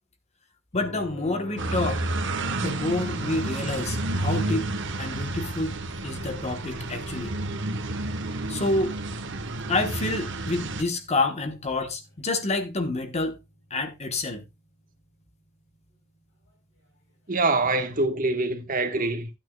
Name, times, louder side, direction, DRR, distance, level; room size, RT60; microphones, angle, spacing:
sound 1, 0.7-14.6 16.8-16.9, left 1 dB, 60° left, 6.2 m, -46 dB
voice 1, 0.7-2.0 2.6-4.7 5.0-5.7 6.0-7.3 8.5-9.0 9.7-13.3 13.7-14.4, left 2 dB, 35° left, 1.2 m, -28 dB
sound 2, 1.6-10.8, right 2 dB, 65° right, 1.2 m, -30 dB
voice 2, 17.3-19.3, right 2 dB, 45° right, 1.4 m, -24 dB
13.5 x 9.0 x 2.3 m
head